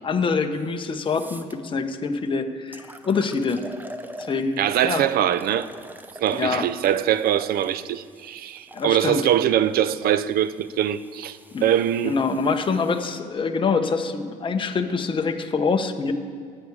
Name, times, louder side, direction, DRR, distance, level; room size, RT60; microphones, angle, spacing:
voice 1, 0.0-3.6 4.3-5.0 6.3-6.6 8.7-9.2 11.5-11.6 12.0-16.1, left 4 dB, 30° left, 1.0 m, -25 dB
sound 1, 0.6-0.7 1.1-1.5 2.2-2.3 2.7-4.8 5.3-8.9 9.8-13.2, right 1 dB, 10° right, 0.6 m, -43 dB
voice 2, 4.6-5.7 6.2-12.1, right 10 dB, 65° right, 0.5 m, -22 dB
14.0 x 8.5 x 4.8 m
cardioid pair, 110°, 17 cm